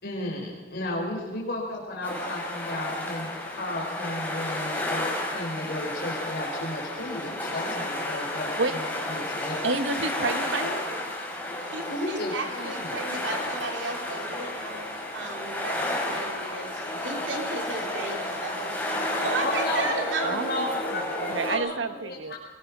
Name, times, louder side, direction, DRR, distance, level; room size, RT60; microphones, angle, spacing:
voice 1, 0.0-9.6 11.8-13.4 19.4-22.4, left 1 dB, 60° left, -2 dB, 4.6 m, -34 dB
sound 1, 2.0-21.6, left 1 dB, 10° left, 5.5 m, -32 dB
voice 2, 9.6-10.8 20.2-20.7 20.9-21.0 21.3-22.3, right 3 dB, 90° right, 10 dB, 1.3 m, -29 dB
voice 3, 11.6-14.8 15.1-20.7, right 3 dB, 75° right, 3 dB, 3.3 m, -34 dB
22.5 x 21.0 x 6.2 m, 1.2 s
head